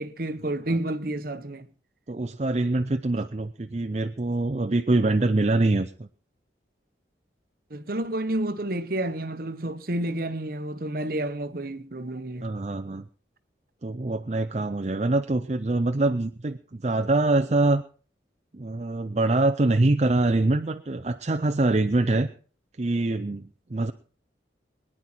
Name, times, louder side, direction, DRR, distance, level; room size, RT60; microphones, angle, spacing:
voice 1, 0.0-1.7 7.7-12.5, right 1 dB, 50° right, 1.0 m, -30 dB
voice 2, 2.1-6.1 12.4-13.0 13.8-17.8 18.5-22.3 22.8-23.4 23.7-23.9, right 2 dB, 35° right, 0.6 m, -24 dB
22.5 x 10.0 x 4.4 m
head